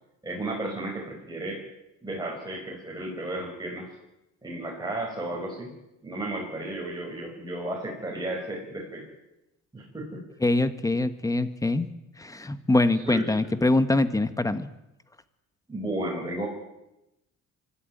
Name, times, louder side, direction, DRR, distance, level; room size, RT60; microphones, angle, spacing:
voice 1, 0.2-1.6 2.0-3.9 4.4-5.7 6.0-9.1 9.7-10.2 13.0-13.5 15.7-16.5, right 1 dB, 15° right, -2 dB, 5.5 m, -33 dB
voice 2, 10.4-11.9 12.2-14.7, left 2 dB, 10° left, 12 dB, 1.4 m, -24 dB
25.0 x 13.0 x 9.3 m, 0.91 s
cardioid pair, 125°, 31 cm